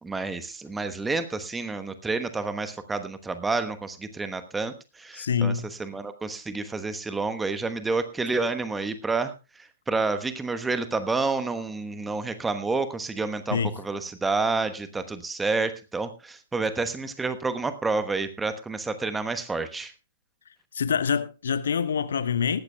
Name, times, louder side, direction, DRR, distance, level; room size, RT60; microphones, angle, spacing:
voice 1, 0.0-19.9, right 3 dB, 10° right, 1.1 m, -29 dB
voice 2, 5.1-5.7 13.5-13.8 20.7-22.6, left 6 dB, 60° left, 0.9 m, -25 dB
18.5 x 14.5 x 2.3 m
figure-of-eight pair, 115°, 0 cm